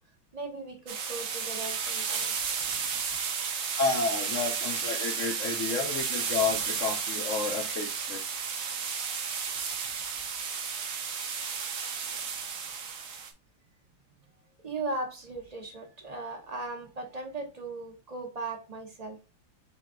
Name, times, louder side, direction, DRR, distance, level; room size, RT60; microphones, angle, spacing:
voice 1, 0.3-2.3 14.6-19.2, right 3 dB, 35° right, 0.6 m, -38 dB
sound 1, 0.9-13.3, right 6 dB, 60° right, 0.9 m, -33 dB
voice 2, 3.8-8.2, left 4 dB, 65° left, 0.7 m, -31 dB
6.0 x 2.3 x 3.7 m
omnidirectional pair, 2.1 m